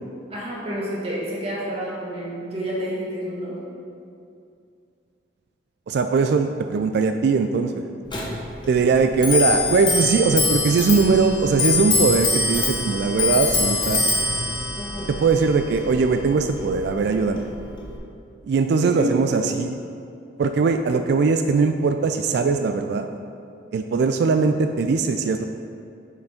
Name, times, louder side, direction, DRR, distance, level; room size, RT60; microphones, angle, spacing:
voice 1, 0.3-3.6 14.8-15.1 18.8-19.2 24.1-24.4, equal, 35° right, -5 dB, 1.7 m, -29 dB
voice 2, 5.9-7.9 8.7-14.0 15.1-17.5 18.5-19.8 20.4-23.1 23.7-25.5, right 4 dB, 60° right, 7 dB, 0.3 m, -20 dB
Clock, 8.1-18.0, left 3 dB, 25° left, 0.9 m, -25 dB
6.9 x 4.9 x 5.0 m, 2.5 s
head